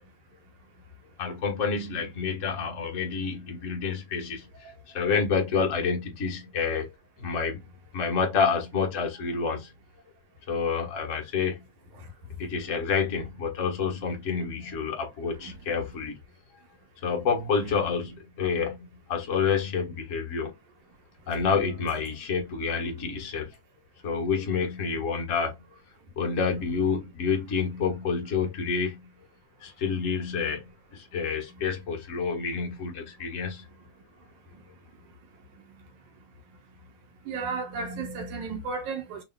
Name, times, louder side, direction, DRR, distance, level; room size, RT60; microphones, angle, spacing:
voice 1, 1.2-6.9 7.2-7.6 7.9-9.7 10.5-11.6 12.4-16.2 17.0-18.8 19.1-20.5 21.3-23.5 24.0-25.6 26.2-29.0 29.6-30.6 30.9-33.6, left 5 dB, 45° left, 1.0 m, -28 dB
voice 2, 37.2-39.2, right 4 dB, 75° right, 2.7 m, -34 dB
6.5 x 2.8 x 2.2 m
omnidirectional pair, 3.4 m